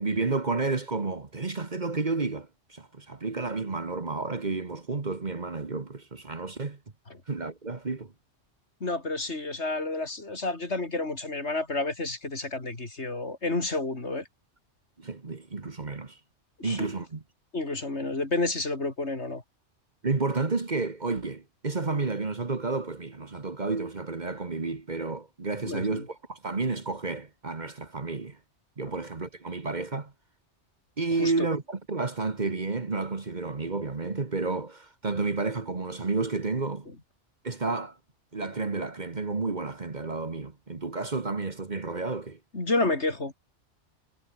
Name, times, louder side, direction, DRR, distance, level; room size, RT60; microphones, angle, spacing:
voice 1, 0.0-6.8 7.3-8.1 15.0-16.2 16.6-17.2 20.0-28.4 28.8-30.1 31.0-36.9 37.4-38.0 38.3-42.4, right 3 dB, 40° right, 1.6 m, -31 dB
voice 2, 8.8-14.3 16.6-16.9 17.5-19.4 25.6-26.0 28.9-29.0 31.2-31.5 42.5-43.3, left 2 dB, 65° left, 4.0 m, -30 dB
omnidirectional pair, 1.2 m